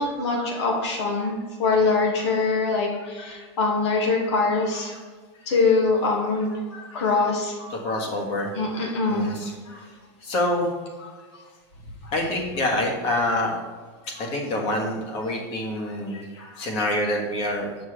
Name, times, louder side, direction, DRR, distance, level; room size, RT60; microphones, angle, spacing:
voice 1, 0.0-5.0 5.5-7.7 8.6-9.3 9.7-9.8 12.0-12.1 16.1-16.6, left 3 dB, 80° left, -1 dB, 2.1 m, -24 dB
voice 2, 7.7-8.5 9.1-10.8 11.3-11.4 12.1-13.6 14.1-16.2 16.6-17.7, left 1 dB, 45° left, 0 dB, 1.7 m, -27 dB
7.4 x 6.0 x 3.3 m, 1.5 s
supercardioid pair, 155°, 14 cm